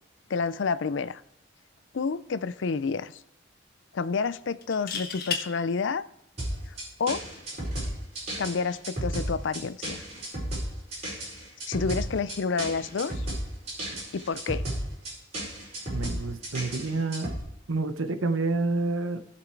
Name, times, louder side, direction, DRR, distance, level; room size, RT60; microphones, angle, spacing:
voice 1, 0.3-1.2 1.9-3.2 3.9-6.0 7.0-7.2 8.4-10.0 11.7-13.3 14.1-14.6, left 5 dB, 65° left, 16 dB, 0.4 m, -29 dB
sound 1, 1.8-2.0 2.3-2.4 4.6-5.4 7.3-7.5, left 6 dB, 50° left, 1.4 m, -32 dB
sound 2, 6.4-17.4, right 1 dB, 35° right, 4.7 m, -33 dB
voice 2, 15.9-17.3 17.7-19.2, right 3 dB, 85° right, 10 dB, 0.9 m, -28 dB
15.5 x 5.9 x 4.6 m, 0.77 s
head